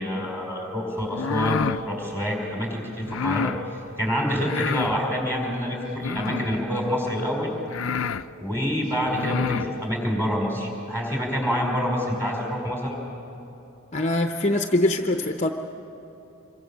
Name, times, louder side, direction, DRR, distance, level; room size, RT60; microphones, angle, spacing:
voice 1, 0.0-3.5 4.0-7.5 8.4-13.0, equal, 10° right, -1 dB, 5.2 m, -27 dB
sound 1, 1.1-1.8 3.1-3.6 4.4-5.0 6.0-6.6 7.3-7.4 7.7-8.2 9.0-9.7, left 6 dB, 65° left, 0.5 m, -28 dB
voice 2, 13.9-15.5, left 1 dB, 30° left, 5 dB, 0.7 m, -23 dB
26.0 x 23.5 x 7.3 m, 2.9 s
head